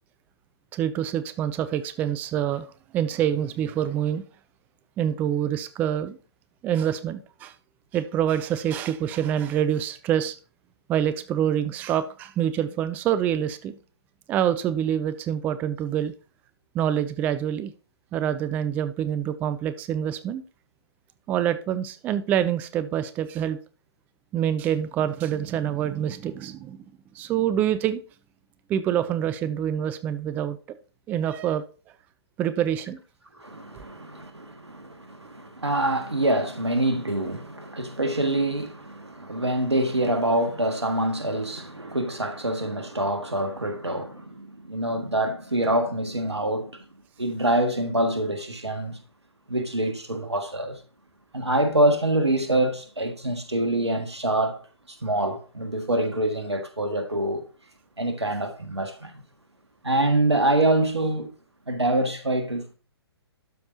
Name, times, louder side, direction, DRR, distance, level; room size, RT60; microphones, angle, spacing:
voice 1, 0.7-2.7 2.9-4.2 5.0-6.2 6.6-7.5 7.9-10.4 10.9-13.7 14.3-16.1 16.7-17.7 18.1-20.4 21.3-23.6 24.3-26.8 27.1-28.0 28.7-30.6 31.1-31.6 32.4-33.0, right 10 dB, 10° right, 0.3 m, -26 dB
voice 2, 33.4-46.8 47.2-49.0 49.5-50.8 51.3-54.6 54.9-57.5 58.0-59.1 59.8-61.3 61.7-62.7, right 1 dB, 85° right, 1.6 m, -25 dB
12.0 x 5.2 x 2.8 m
figure-of-eight pair, 125°, 14 cm